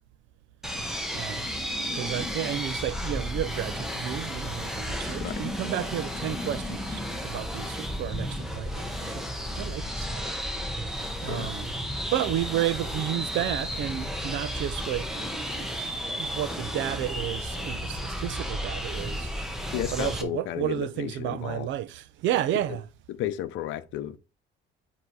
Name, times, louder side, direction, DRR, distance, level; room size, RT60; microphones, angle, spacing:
sound 1, 0.6-20.2, equal, ahead, 0.9 m, -33 dB
voice 1, 1.1-1.5 1.9-9.2 9.5-10.4 10.7-11.7 12.1-15.1 16.2-19.3 19.9-22.8, right 12 dB, 70° right, 0.6 m, -32 dB
voice 2, 19.7-21.7 22.7-22.8 23.1-24.2, left 12 dB, 70° left, 0.6 m, -33 dB
8.0 x 2.9 x 4.7 m
cardioid pair, 175°, 20 cm